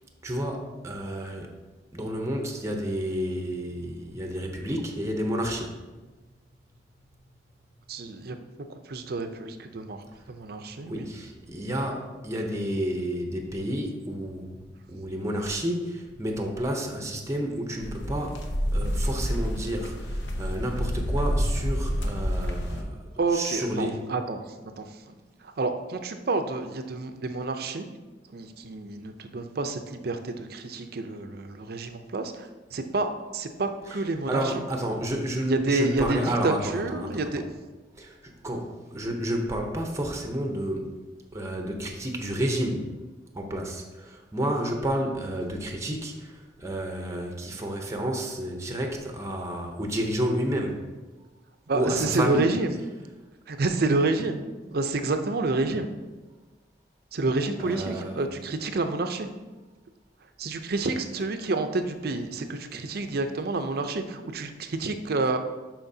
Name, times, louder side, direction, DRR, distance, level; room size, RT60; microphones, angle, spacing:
voice 1, 0.2-1.5 1.9-5.7 10.9-14.6 14.9-18.4 18.7-23.0 23.3-24.1 34.3-37.4 38.0-40.9 41.3-42.9 43.3-50.9 51.7-52.5 57.6-58.2, equal, 15° right, 2 dB, 0.7 m, -30 dB
voice 2, 7.9-8.4 8.7-11.1 23.2-25.0 25.4-27.9 28.3-34.6 35.5-37.5 51.7-52.7 53.5-55.9 57.1-59.3 60.4-65.4, right 3 dB, 60° right, 7 dB, 0.6 m, -29 dB
sound 1, 17.8-22.8, equal, 80° left, 0.8 m, -28 dB
11.5 x 4.4 x 2.7 m, 1.2 s
head